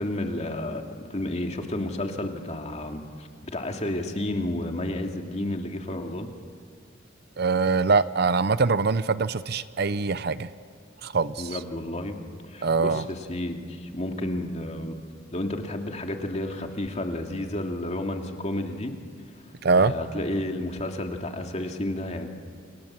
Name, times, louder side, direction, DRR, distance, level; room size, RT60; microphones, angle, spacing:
voice 1, 0.0-6.3 11.4-12.2 12.5-14.9 15.3-18.9 19.7-22.3, left 1 dB, 35° left, 3 dB, 2.4 m, -31 dB
voice 2, 7.4-10.5 11.0-11.6 12.6-13.0 19.6-19.9, right 4 dB, 60° right, 15 dB, 0.7 m, -23 dB
28.5 x 27.0 x 7.5 m, 2.1 s
head